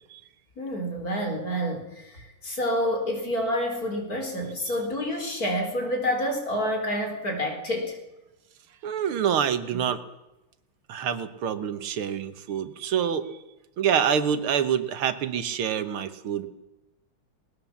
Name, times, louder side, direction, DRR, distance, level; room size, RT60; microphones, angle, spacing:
voice 1, 0.6-8.0 9.7-9.8, equal, 40° left, 3 dB, 4.5 m, -28 dB
voice 2, 8.8-10.0 10.9-13.3 13.8-16.5, right 8 dB, 80° right, 11 dB, 2.1 m, -26 dB
20.0 x 19.5 x 7.2 m, 0.98 s
omnidirectional pair, 2.3 m